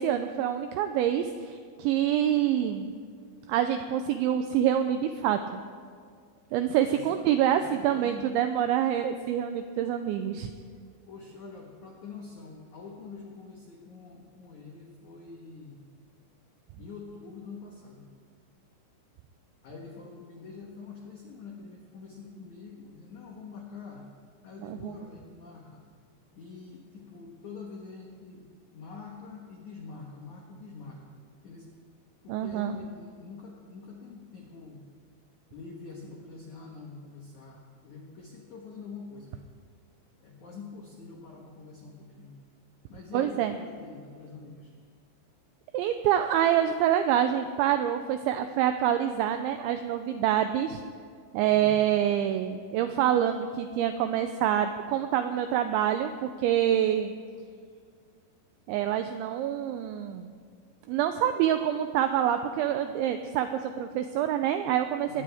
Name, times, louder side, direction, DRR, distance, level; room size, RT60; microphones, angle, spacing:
voice 1, 0.0-2.9 3.5-5.4 6.5-10.5 24.7-24.9 32.3-32.7 43.1-43.5 45.7-50.8 51.3-57.1 58.7-60.3 60.9-65.2, right 10 dB, 85° right, 8 dB, 2.7 m, -26 dB
voice 2, 6.9-8.3 11.1-15.8 16.8-18.0 19.6-24.1 24.4-25.8 26.3-28.5 28.7-31.1 31.4-31.7 32.2-34.9 35.5-39.4 40.2-42.3 42.9-44.7 51.5-51.8 65.1-65.2, left 4 dB, 80° left, 0 dB, 1.7 m, -45 dB
22.0 x 18.5 x 3.5 m, 2.1 s
omnidirectional pair, 5.9 m